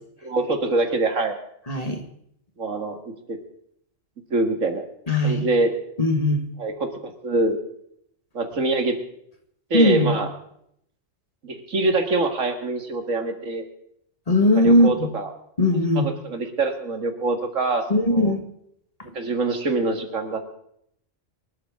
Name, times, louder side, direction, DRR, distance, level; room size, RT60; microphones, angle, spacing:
voice 1, 0.2-1.3 2.6-3.4 4.3-4.8 5.2-5.7 6.6-7.6 8.3-9.0 9.7-10.3 11.4-13.6 14.6-15.3 16.0-17.8 18.1-18.3 19.1-20.5, right 2 dB, 85° right, 5 dB, 2.3 m, -24 dB
voice 2, 1.7-2.1 5.1-5.5 6.0-6.4 9.7-10.2 14.3-15.1 15.6-16.1 17.9-18.4, left 1 dB, 30° left, 4 dB, 1.8 m, -19 dB
24.5 x 12.0 x 3.7 m, 0.70 s
omnidirectional pair, 1.3 m